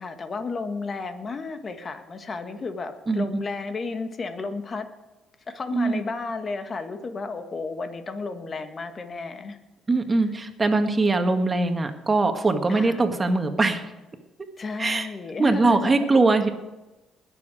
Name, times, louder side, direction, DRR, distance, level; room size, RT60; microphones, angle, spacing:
voice 1, 0.0-4.9 5.5-9.6 12.7-13.0 14.6-16.1, left 4 dB, 45° left, 7 dB, 1.8 m, -33 dB
voice 2, 9.9-13.8 14.8-15.1 15.4-16.5, right 3 dB, 30° right, 6 dB, 1.8 m, -21 dB
20.0 x 7.2 x 5.0 m, 1.0 s
supercardioid pair, 65°, 0 cm